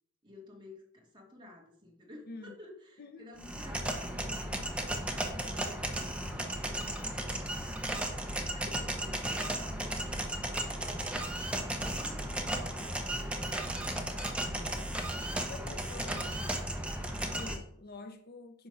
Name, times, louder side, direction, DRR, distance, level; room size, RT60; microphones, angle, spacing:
voice 1, 0.2-7.7 8.5-10.1 10.7-13.7 15.6-16.6, left 2 dB, 25° right, 2.5 m, -53 dB
voice 2, 3.0-3.3 15.5-16.4 17.2-18.7, left 3 dB, 50° left, 0.7 m, -47 dB
sound 1, 3.4-17.6, right 1 dB, 5° right, 0.9 m, -35 dB
9.9 x 3.7 x 6.1 m
head